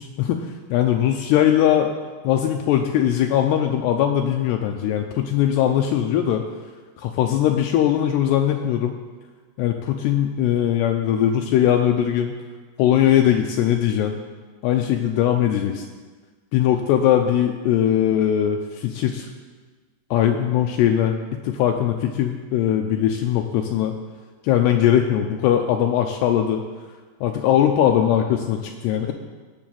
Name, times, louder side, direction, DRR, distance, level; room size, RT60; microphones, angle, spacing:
voice 1, 0.0-1.9 2.2-6.4 7.0-9.0 9.6-12.3 12.8-14.2 14.6-15.9 16.5-19.3 20.1-24.0 24.4-26.6 27.2-29.1, left 10 dB, 80° left, 4 dB, 2.7 m, -20 dB
18.5 x 7.2 x 7.6 m, 1.4 s
omnidirectional pair, 5.1 m